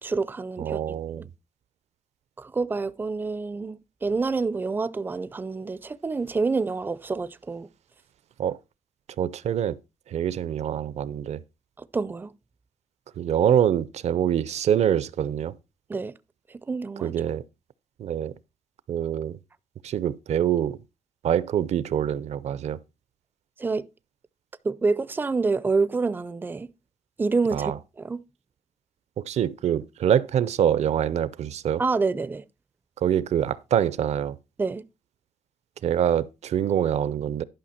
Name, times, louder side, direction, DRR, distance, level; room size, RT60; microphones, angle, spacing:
voice 1, 0.0-0.8 1.2-1.3 2.4-7.7 11.8-12.3 15.9-16.1 16.5-17.1 23.6-23.9 24.6-26.7 27.2-27.7 28.0-28.2 31.8-32.4 34.6-34.8, right 4 dB, 15° right, 0.4 m, -27 dB
voice 2, 0.6-1.3 8.4-8.6 9.2-9.8 10.1-11.4 13.2-15.6 17.0-17.4 18.0-18.3 18.9-19.4 19.8-20.8 21.2-22.8 27.5-27.8 29.2-31.8 33.0-34.4 35.8-37.4, right 9 dB, 65° right, 0.6 m, -25 dB
11.5 x 5.7 x 4.3 m
wide cardioid pair, 145°, 12 cm